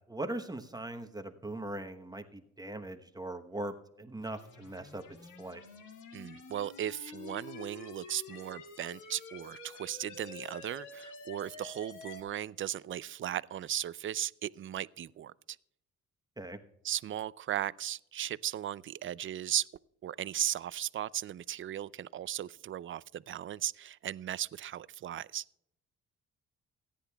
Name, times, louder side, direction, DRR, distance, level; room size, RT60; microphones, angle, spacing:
voice 1, 0.1-5.0 5.4-5.6 16.4-16.6, right 1 dB, 15° right, 1.0 m, -40 dB
sound 1, 4.2-12.2, left 4 dB, 80° left, 2.0 m, -48 dB
voice 2, 6.1-15.3 16.8-19.7 20.0-25.4, right 11 dB, 45° right, 0.4 m, -37 dB
28.0 x 10.0 x 2.3 m
cardioid pair, 90°, 30 cm